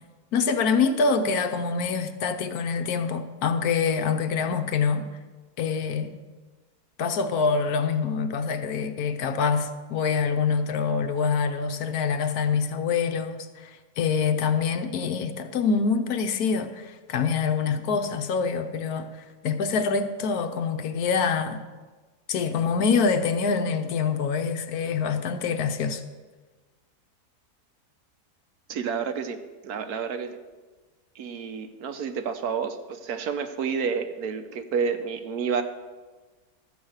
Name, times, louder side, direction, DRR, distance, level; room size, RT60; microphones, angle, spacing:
voice 1, 0.3-5.1 5.6-6.1 7.0-13.7 14.0-19.1 19.4-21.6 22.3-26.0, left 5 dB, 70° left, 1.2 m, -25 dB
voice 2, 28.7-29.4 29.6-30.4 31.2-35.6, right 6 dB, 75° right, 1.3 m, -29 dB
13.0 x 5.2 x 7.9 m
omnidirectional pair, 1.7 m